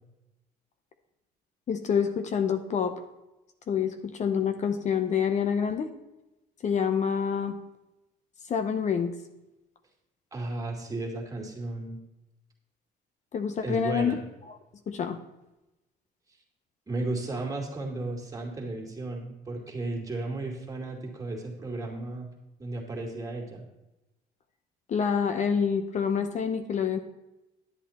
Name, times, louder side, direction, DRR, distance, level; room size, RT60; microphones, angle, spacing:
voice 1, 1.7-2.9 3.7-5.9 6.6-7.6 8.5-9.1 13.3-14.2 14.9-15.2 24.9-27.0, left 7 dB, 45° left, 8 dB, 0.8 m, -27 dB
voice 2, 10.3-12.0 13.6-14.2 16.9-22.3 22.6-23.6, right 2 dB, 20° right, 0 dB, 2.4 m, -34 dB
10.5 x 8.1 x 4.3 m, 0.96 s
cardioid pair, 110°, 17 cm